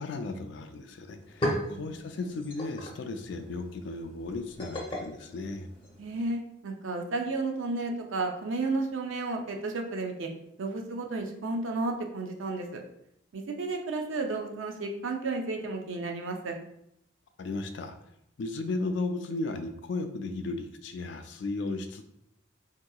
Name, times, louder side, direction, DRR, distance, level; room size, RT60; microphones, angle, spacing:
voice 1, 0.0-5.7 17.4-18.0 18.4-22.0, left 3 dB, 65° left, 7 dB, 0.4 m, -35 dB
sound 1, 0.7-0.8 1.1-6.3, equal, 25° left, 0.6 m, -37 dB
voice 2, 1.6-2.0 6.0-10.3 10.6-12.8 13.3-16.6, right 3 dB, 80° right, 3 dB, 0.5 m, -32 dB
3.6 x 2.8 x 2.3 m, 0.74 s
head